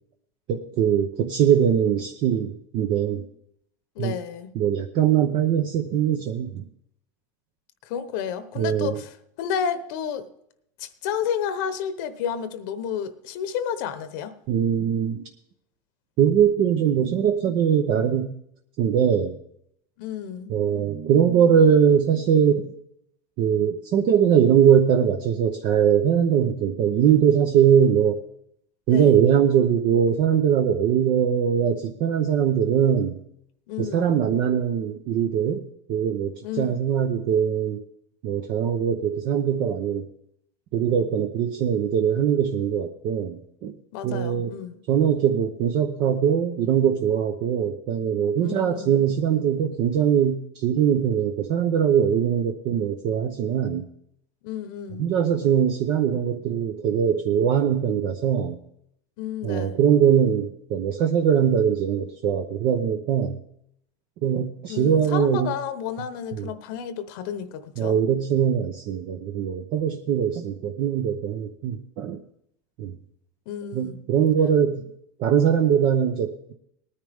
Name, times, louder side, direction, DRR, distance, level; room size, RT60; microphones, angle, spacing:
voice 1, 0.5-3.3 4.0-4.1 4.5-6.7 8.6-9.0 14.5-15.2 16.2-18.3 18.8-19.4 20.5-22.7 23.4-28.2 28.9-33.2 33.8-37.8 38.2-40.1 40.7-43.8 44.0-44.5 44.9-53.9 55.0-58.6 59.4-63.4 64.2-65.5 66.4-66.5 67.8-72.2 72.8-73.0 73.7-74.9 75.2-76.5, right 8 dB, 50° right, 0.8 m, -21 dB
voice 2, 3.9-4.5 7.8-10.3 10.8-14.3 20.0-20.5 28.9-29.2 33.7-34.2 36.4-36.8 43.9-44.8 48.4-48.9 54.4-55.1 59.2-59.8 64.7-68.0 73.5-74.0, left 8 dB, 65° left, 1.0 m, -31 dB
19.0 x 9.8 x 3.6 m
supercardioid pair, 135°, 11 cm